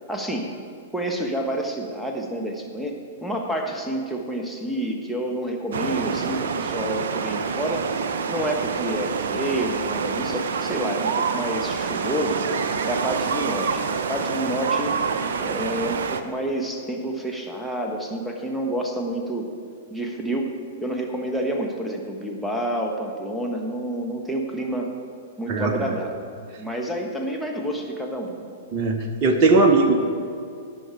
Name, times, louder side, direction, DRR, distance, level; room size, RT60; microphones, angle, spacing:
voice 1, 0.1-0.5 0.9-7.8 8.3-12.4 12.9-14.9 15.4-19.5 19.9-20.5 20.8-24.9 25.4-26.1 26.6-28.5, right 1 dB, ahead, 0 dB, 1.2 m, -29 dB
sound 1, 5.7-16.2, right 5 dB, 55° right, 0.7 m, -27 dB
voice 2, 25.5-26.0 28.7-30.0, right 3 dB, 35° right, 2 dB, 1.0 m, -19 dB
17.5 x 6.4 x 4.9 m, 2.3 s
figure-of-eight pair, 105°, 0 cm